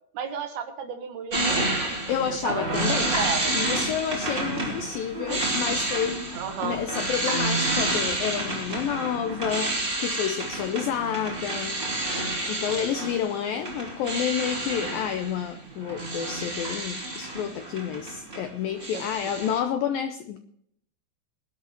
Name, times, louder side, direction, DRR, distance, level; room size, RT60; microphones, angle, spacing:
voice 1, 0.1-1.8 2.3-3.5 6.3-6.8 18.9-19.1, right 6 dB, 70° right, 5 dB, 2.8 m, -33 dB
sound 1, 1.3-18.5 18.8-19.6, right 2 dB, 15° right, 2.9 m, -29 dB
voice 2, 2.1-3.2 3.5-6.2 6.6-11.8 12.5-20.4, left 9 dB, 85° left, 9 dB, 2.0 m, -29 dB
21.0 x 12.0 x 3.0 m, 0.69 s
omnidirectional pair, 5.1 m